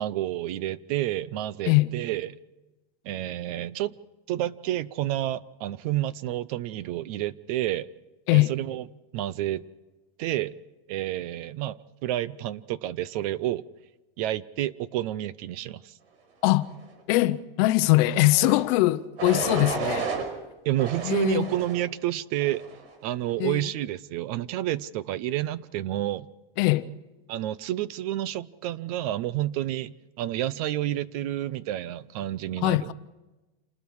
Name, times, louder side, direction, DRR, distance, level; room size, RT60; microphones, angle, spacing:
voice 1, 0.0-2.3 3.0-3.9 4.3-7.9 8.3-8.8 9.1-9.6 10.2-10.5 10.9-13.6 14.2-15.9 20.6-22.6 23.0-26.3 27.3-32.9, right 14 dB, 40° right, 0.6 m, -29 dB
voice 2, 17.1-20.1 21.0-21.5 23.4-23.7 26.6-26.9 32.6-32.9, left 18 dB, 40° left, 0.7 m, -22 dB
sound 1, 18.2-18.6 19.2-20.3 20.8-21.8 22.4-22.8, right 5 dB, 85° right, 5.3 m, -32 dB
28.0 x 20.0 x 4.8 m
supercardioid pair, 170°, 30 cm